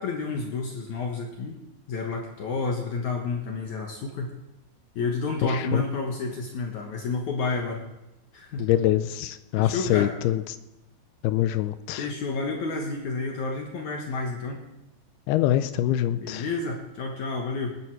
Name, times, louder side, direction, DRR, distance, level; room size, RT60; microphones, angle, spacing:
voice 1, 0.0-1.6 1.9-4.3 4.9-7.8 8.3-8.7 9.6-10.1 12.0-14.6 16.1-17.8, left 3 dB, 60° left, 1 dB, 2.3 m, -30 dB
voice 2, 8.6-10.4 11.2-12.1 15.3-16.4, left 13 dB, 85° left, 12 dB, 2.6 m, -24 dB
19.0 x 11.0 x 4.8 m, 0.94 s
omnidirectional pair, 4.5 m